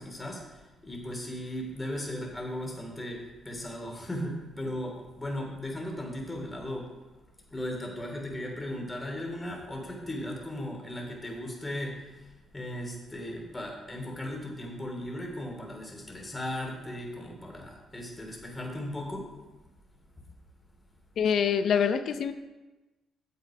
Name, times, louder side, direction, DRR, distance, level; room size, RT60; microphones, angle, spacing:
voice 1, 0.0-6.9 7.5-19.3 20.1-20.2, left 1 dB, 15° left, 0 dB, 2.9 m, -37 dB
voice 2, 21.2-22.3, left 7 dB, 65° left, 10 dB, 0.7 m, -25 dB
8.6 x 7.6 x 4.9 m, 1.1 s
cardioid pair, 90°, 0 cm